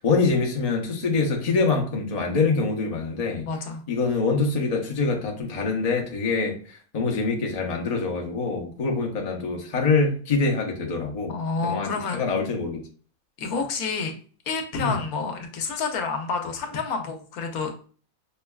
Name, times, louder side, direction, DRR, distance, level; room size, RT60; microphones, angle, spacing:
voice 1, 0.0-3.5 3.9-6.6 6.9-11.3 11.6-12.8 14.8-14.9, left 4 dB, 40° left, 0.5 m, -25 dB
voice 2, 3.4-3.8 11.3-12.2 13.4-14.2 14.5-17.9, left 4 dB, 80° left, 1.1 m, -29 dB
5.4 x 2.2 x 2.2 m
omnidirectional pair, 1.5 m